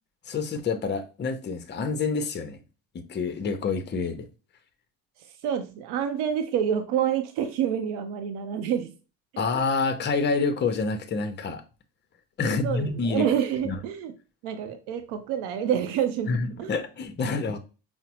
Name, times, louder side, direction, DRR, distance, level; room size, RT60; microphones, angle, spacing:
voice 1, 0.3-2.6 2.9-4.3 9.4-11.6 12.4-13.3 13.6-13.8 16.3-17.6, left 4 dB, 25° left, 0.6 m, -27 dB
voice 2, 5.4-8.9 9.3-9.5 12.4-14.1 14.4-16.7, right 9 dB, 85° right, 0.6 m, -28 dB
4.9 x 2.0 x 2.9 m
cardioid pair, 105°, 39 cm